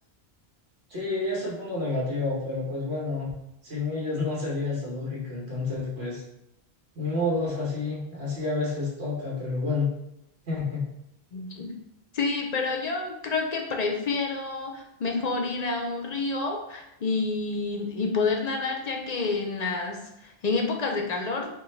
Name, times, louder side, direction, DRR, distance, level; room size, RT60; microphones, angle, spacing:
voice 1, 0.9-3.3 3.6-6.2 7.0-9.9 10.5-10.8, left 3 dB, 80° right, -5 dB, 1.5 m, -29 dB
voice 2, 11.3-11.7 12.1-21.6, left 4 dB, 55° left, 2 dB, 0.5 m, -29 dB
4.8 x 2.3 x 3.2 m, 0.83 s
omnidirectional pair, 1.1 m